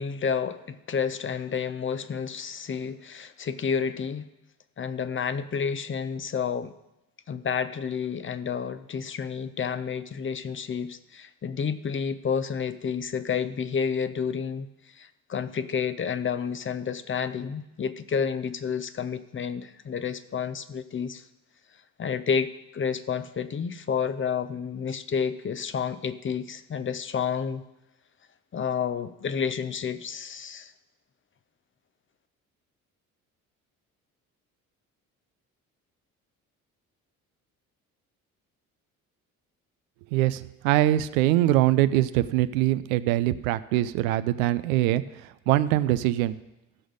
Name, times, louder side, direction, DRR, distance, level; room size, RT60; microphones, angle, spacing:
voice 1, 0.0-4.3 4.8-6.7 7.3-14.7 14.9-21.2 22.0-27.6 28.5-30.7, left 6 dB, 30° left, 13 dB, 0.7 m, -30 dB
voice 2, 40.1-45.0 45.5-46.4, right 15 dB, 75° right, 14 dB, 0.6 m, -23 dB
14.5 x 6.3 x 5.1 m, 0.93 s
figure-of-eight pair, 50°, 42 cm